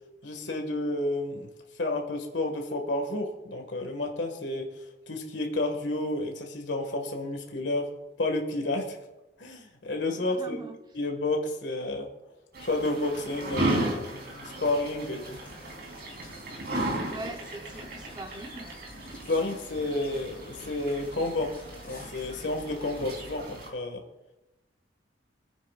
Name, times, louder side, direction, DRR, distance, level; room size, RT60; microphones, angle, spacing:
voice 1, 0.2-1.5 1.8-4.7 5.1-7.9 8.2-9.0 9.4-10.6 10.9-12.1 12.6-15.4 19.3-21.6 21.8-24.0, left 2 dB, 70° left, 2 dB, 1.9 m, -31 dB
voice 2, 10.1-10.8 17.1-18.8, right 2 dB, 20° right, 5 dB, 0.9 m, -41 dB
sound 1, 12.5-23.7, right 1 dB, 55° right, 3.8 m, -35 dB
sound 2, 14.9-23.4, equal, 10° left, 4.5 m, -52 dB
27.5 x 9.4 x 2.5 m, 0.99 s
head